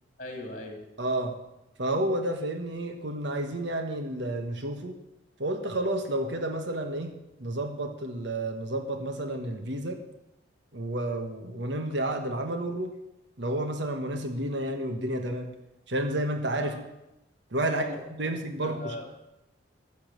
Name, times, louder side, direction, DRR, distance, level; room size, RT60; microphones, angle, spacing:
voice 1, 0.2-0.9 16.6-16.7 17.7-19.1, left 1 dB, 40° left, 3 dB, 2.6 m, -39 dB
voice 2, 1.0-1.4 1.8-4.9 5.4-7.1 7.4-10.0 10.7-12.9 13.4-15.5 15.9-16.7 17.5-17.8 18.2-18.9, right 1 dB, 60° right, 6 dB, 1.3 m, -30 dB
13.5 x 7.2 x 7.4 m, 0.91 s
head